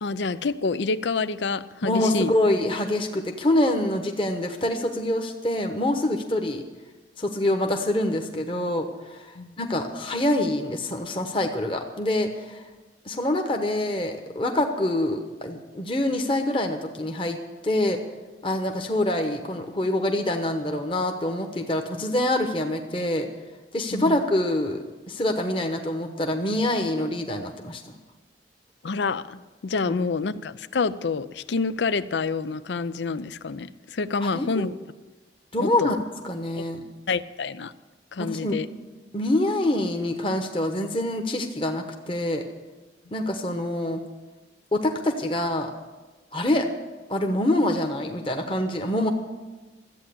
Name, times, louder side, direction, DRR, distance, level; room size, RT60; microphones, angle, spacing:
voice 1, 0.0-2.3 9.4-9.5 23.9-24.1 28.8-34.7 35.6-36.0 36.6-36.7 37.1-37.7 38.1-38.7, left 4 dB, 75° left, 15 dB, 0.5 m, -28 dB
voice 2, 1.8-6.6 7.2-12.6 13.0-17.4 17.6-18.0 18.4-23.3 23.7-27.8 29.9-30.0 34.2-34.7 35.5-36.0 36.2-36.8 38.2-38.6 39.1-42.4 43.1-44.0 44.7-45.7 46.3-46.7 47.1-49.1, left 1 dB, 30° left, 4 dB, 1.1 m, -25 dB
14.0 x 8.7 x 8.6 m, 1.2 s
head